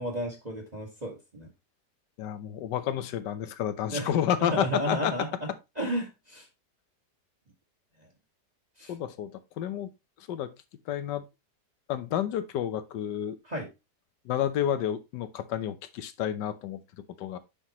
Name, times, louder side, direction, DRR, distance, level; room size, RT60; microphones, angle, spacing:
voice 1, 0.0-1.5 3.9-4.1 4.5-5.5 5.8-6.5 8.8-8.9 13.4-13.7, right 1 dB, 25° right, 1.7 m, -33 dB
voice 2, 2.2-5.1 8.9-9.9 10.2-10.5 10.9-11.2 11.9-13.4 14.2-16.8 17.2-17.4, left 10 dB, 85° left, 1.5 m, -30 dB
8.7 x 5.7 x 3.0 m
omnidirectional pair, 1.8 m